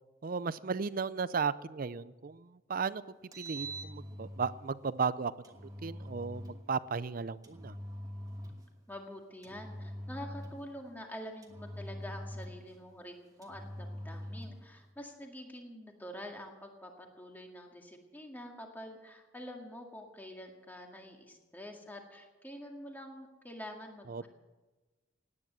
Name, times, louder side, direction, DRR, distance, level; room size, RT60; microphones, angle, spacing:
voice 1, 0.2-3.0 3.4-5.3 5.8-7.8 24.1-24.3, right 5 dB, 45° right, 17 dB, 0.5 m, -35 dB
Engine, 3.1-4.6 5.4-6.6 7.4-8.7 9.4-10.7 11.4-12.8 13.4-14.6, equal, 20° right, 1.3 m, -43 dB
voice 2, 8.9-24.3, equal, 10° left, 2 dB, 2.0 m, -47 dB
17.5 x 9.7 x 7.5 m, 1.2 s
head